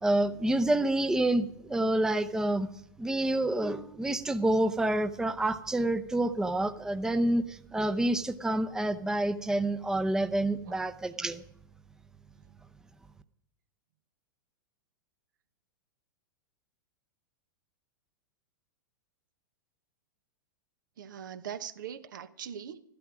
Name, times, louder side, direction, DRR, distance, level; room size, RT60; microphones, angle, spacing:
voice 1, 0.0-2.7 3.0-11.4, right 1 dB, 5° right, 9 dB, 0.7 m, -28 dB
voice 2, 21.0-22.8, right 8 dB, 70° right, 11 dB, 1.1 m, -41 dB
14.0 x 12.0 x 6.1 m, 0.74 s
hypercardioid pair, 105°, 11 cm